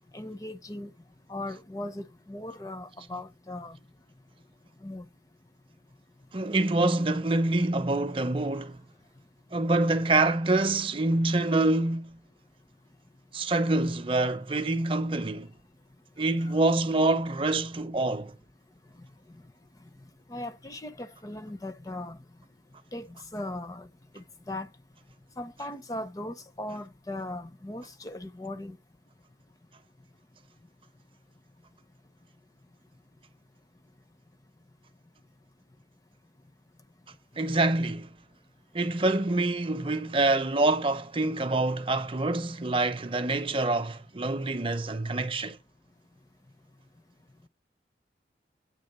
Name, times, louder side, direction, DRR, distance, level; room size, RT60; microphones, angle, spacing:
voice 1, 0.1-0.9 1.3-3.8 4.8-5.1 16.4-16.5 20.3-22.2 22.9-23.9 24.1-24.7 25.4-28.8, left 1 dB, 20° left, 0.6 m, -38 dB
voice 2, 6.3-8.8 9.5-12.2 13.3-15.5 16.2-18.3 37.4-38.1 38.7-45.6, right 2 dB, 30° right, 0.6 m, -26 dB
8.9 x 3.5 x 6.6 m
head